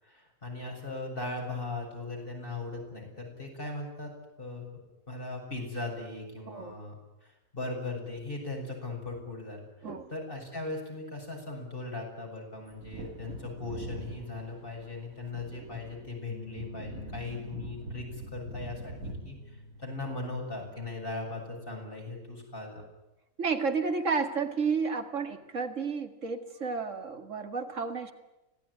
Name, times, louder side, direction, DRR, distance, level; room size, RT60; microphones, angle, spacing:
voice 1, 0.0-4.1 4.4-4.8 5.1-6.9 7.2-19.0 19.2-22.8, left 2 dB, 40° left, 0 dB, 7.5 m, -38 dB
Wind / Thunder, 12.7-21.0 21.2-21.3, right 2 dB, 80° right, 2.7 m, -45 dB
sound 1, 16.3-22.9, left 2 dB, 60° left, 1.5 m, -49 dB
voice 2, 23.4-28.1, right 5 dB, 60° right, 8 dB, 2.4 m, -31 dB
25.5 x 18.0 x 10.0 m, 1.0 s
omnidirectional pair, 1.5 m